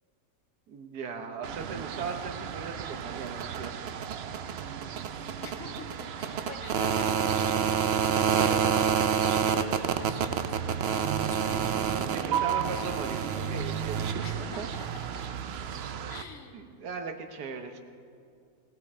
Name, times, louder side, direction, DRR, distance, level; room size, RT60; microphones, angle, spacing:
voice 1, 0.7-3.9 12.0-14.7 16.5-17.8, right 5 dB, 75° right, 6 dB, 1.6 m, -38 dB
sound 1, 1.4-16.2, right 7 dB, 90° right, 0.5 m, -29 dB
voice 2, 5.4-11.9 14.2-14.9 15.1-15.3 16.1-16.5, left 3 dB, 55° left, 3 dB, 1.6 m, -45 dB
19.0 x 16.0 x 4.3 m, 2.4 s
omnidirectional pair, 1.8 m